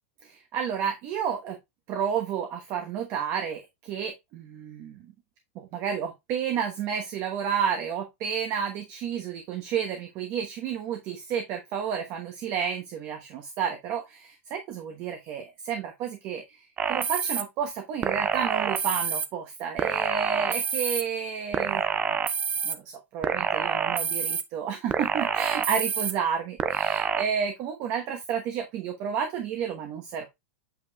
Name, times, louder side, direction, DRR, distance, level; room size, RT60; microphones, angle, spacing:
voice 1, 0.2-1.6 1.9-5.0 5.5-21.9 22.6-22.8 23.1-30.3, right 7 dB, 40° right, 4 dB, 1.1 m, -31 dB
sound 1, 16.8-17.4 18.0-19.3 19.8-21.0 21.5-22.7 23.2-24.4 24.9-26.1 26.6-27.2, right 7 dB, 20° right, 0.5 m, -27 dB
8.1 x 5.2 x 2.3 m, 0.20 s
supercardioid pair, 150°, 7 cm